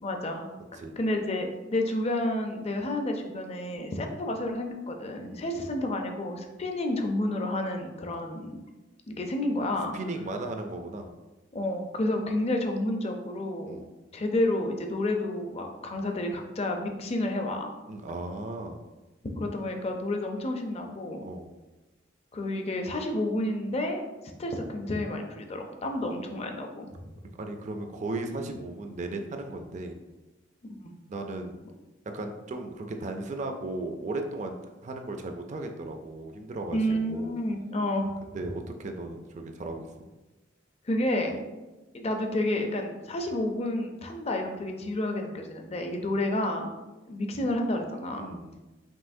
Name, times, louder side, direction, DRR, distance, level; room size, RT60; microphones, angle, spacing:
voice 1, 0.0-0.5 0.7-8.6 9.1-9.9 11.5-13.8 14.1-17.7 19.3-21.2 22.3-24.0 24.4-27.0 30.7-30.9 36.7-38.1 40.9-41.4 41.9-46.7 47.1-48.3, left 1 dB, 35° left, 3 dB, 0.5 m, -30 dB
voice 2, 9.9-11.1 13.7-13.9 17.9-18.8 21.2-21.5 26.0-26.2 27.4-29.9 31.1-31.6 32.1-34.6 34.8-37.4 38.3-39.9 46.1-46.2 48.2-48.6, right 2 dB, 40° right, 5 dB, 0.4 m, -36 dB
5.4 x 3.0 x 2.6 m, 1.1 s
head